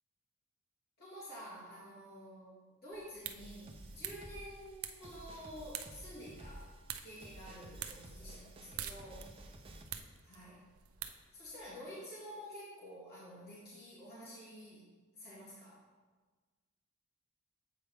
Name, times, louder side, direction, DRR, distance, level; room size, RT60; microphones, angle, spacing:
voice 1, 1.0-6.7 7.0-9.3 10.2-10.6 11.3-14.9 15.1-15.8, equal, 50° left, -8 dB, 1.9 m, -50 dB
sound 1, 2.9-11.8, right 9 dB, 80° right, 0.5 m, -48 dB
sound 2, 3.4-9.8, right 1 dB, 25° right, 0.6 m, -52 dB
7.7 x 4.5 x 3.4 m, 1.4 s
head